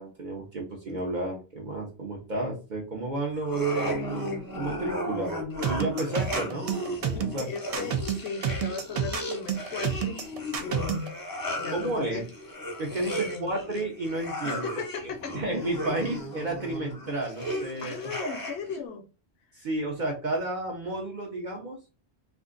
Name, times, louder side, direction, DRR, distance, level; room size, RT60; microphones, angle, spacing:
voice 1, 0.0-5.4 5.7-6.7 7.0-7.5 11.7-12.2 12.8-14.7 15.3-18.4 19.6-21.8, right 2 dB, 50° right, 0.8 m, -32 dB
sound 1, 3.4-18.8, equal, 25° left, 0.6 m, -35 dB
sound 2, 5.6-11.1, right 8 dB, 75° right, 0.3 m, -29 dB
voice 2, 7.1-11.2 11.6-12.3 12.9-13.5 14.4-15.4 17.8-19.0, left 6 dB, 75° left, 0.8 m, -37 dB
2.5 x 2.4 x 3.6 m
omnidirectional pair, 1.2 m